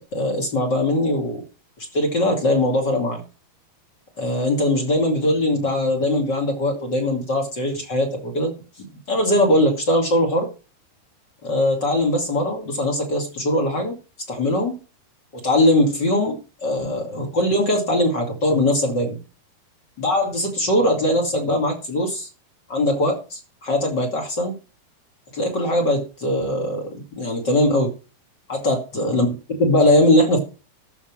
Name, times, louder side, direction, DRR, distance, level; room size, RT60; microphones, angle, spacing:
voice 1, 0.1-1.4 1.9-3.2 4.2-8.5 9.1-10.5 11.4-14.0 14.3-14.7 15.4-19.2 20.0-22.3 22.7-24.5 25.3-27.9 28.5-29.3 29.6-30.4, left 1 dB, 30° left, 1 dB, 2.5 m, -21 dB
13.0 x 6.2 x 6.1 m, 0.34 s
omnidirectional pair, 4.5 m